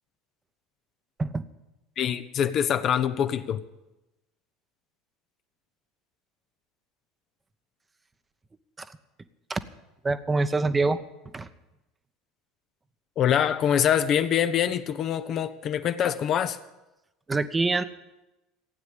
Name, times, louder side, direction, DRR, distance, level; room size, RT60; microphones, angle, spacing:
voice 1, 2.0-3.6 13.2-16.6, left 9 dB, 45° left, 10 dB, 0.8 m, -24 dB
voice 2, 10.0-11.0 11.3-11.5 17.3-17.8, right 3 dB, 20° right, 12 dB, 1.0 m, -25 dB
16.0 x 9.4 x 8.3 m, 0.98 s
figure-of-eight pair, 70°, 0 cm